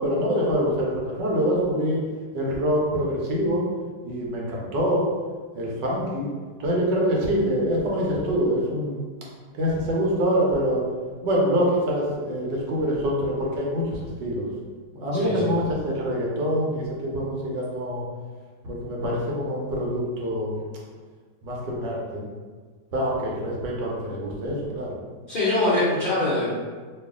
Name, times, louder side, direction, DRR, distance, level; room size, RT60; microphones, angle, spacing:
voice 1, 0.0-2.0 2.3-3.6 4.0-5.0 5.5-6.3 6.6-9.0 9.6-10.8 11.2-14.5 14.9-18.0 18.6-20.5 21.4-22.2 22.9-24.9, equal, 85° right, -3 dB, 1.4 m, -25 dB
voice 2, 25.3-26.6, left 2 dB, 50° left, -10 dB, 0.6 m, -23 dB
3.1 x 2.5 x 3.5 m, 1.5 s
omnidirectional pair, 1.9 m